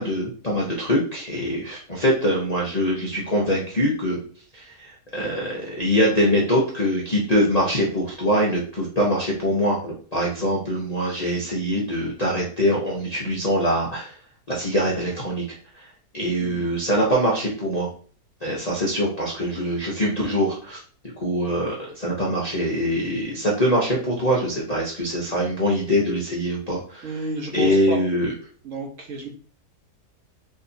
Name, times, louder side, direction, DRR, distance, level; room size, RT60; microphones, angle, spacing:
voice 1, 0.0-4.2 4.5-14.1 14.5-15.4 15.7-15.8 16.1-17.9 18.4-20.8 21.2-27.2 27.5-28.3, equal, 40° left, -5 dB, 0.6 m, -23 dB
voice 2, 27.0-28.0 28.6-29.3, right 3 dB, 55° right, 0 dB, 1.0 m, -31 dB
4.2 x 2.8 x 2.7 m, 0.42 s
omnidirectional pair, 1.8 m